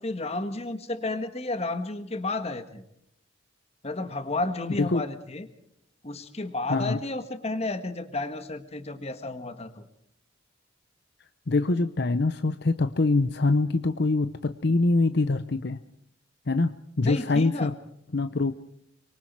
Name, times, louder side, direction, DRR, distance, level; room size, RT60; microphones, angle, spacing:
voice 1, 0.0-2.8 3.8-5.5 6.0-9.9 17.0-17.7, left 2 dB, 35° left, 10 dB, 1.7 m, -32 dB
voice 2, 6.7-7.0 11.5-15.8 16.5-17.7 18.1-18.5, left 3 dB, 60° left, 11 dB, 0.7 m, -24 dB
24.5 x 23.5 x 4.7 m, 0.73 s
head